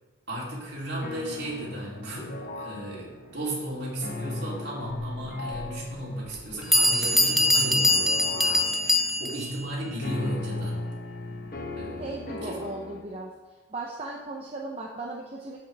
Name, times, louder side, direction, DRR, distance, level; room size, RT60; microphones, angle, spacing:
voice 1, 0.3-10.8 11.8-12.2 12.4-12.6, right 1 dB, 50° right, -6 dB, 3.3 m, -35 dB
sound 1, 1.0-13.0, left 2 dB, 45° left, 1.0 m, -38 dB
Bell, 5.5-5.6 6.3-6.4 6.7-9.5, left 1 dB, ahead, 0.4 m, -22 dB
voice 2, 12.0-13.3 13.7-15.6, right 2 dB, 30° right, -2 dB, 0.8 m, -36 dB
14.0 x 5.9 x 3.4 m, 1.2 s
head